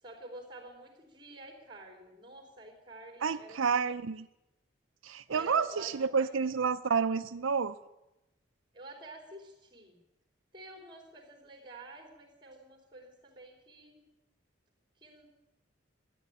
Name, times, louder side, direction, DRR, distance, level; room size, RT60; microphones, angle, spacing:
voice 1, 0.0-3.9 5.3-6.7 8.7-10.0 10.5-14.0 15.0-15.3, right 2 dB, 25° right, 4 dB, 3.9 m, -50 dB
voice 2, 3.2-4.3 5.0-7.7, right 5 dB, 90° right, 10 dB, 0.5 m, -29 dB
13.5 x 10.0 x 9.9 m, 0.95 s
head